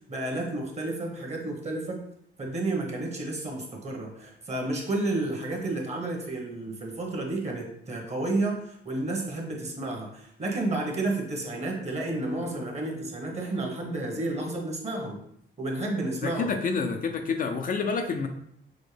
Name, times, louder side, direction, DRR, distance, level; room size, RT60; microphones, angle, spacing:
voice 1, 0.1-2.0 2.4-15.2 15.6-16.6, right 2 dB, 35° right, 1 dB, 1.2 m, -31 dB
voice 2, 16.2-18.3, left 5 dB, 45° left, 5 dB, 0.5 m, -28 dB
6.2 x 2.1 x 3.3 m, 0.70 s
cardioid pair, 90°, 20 cm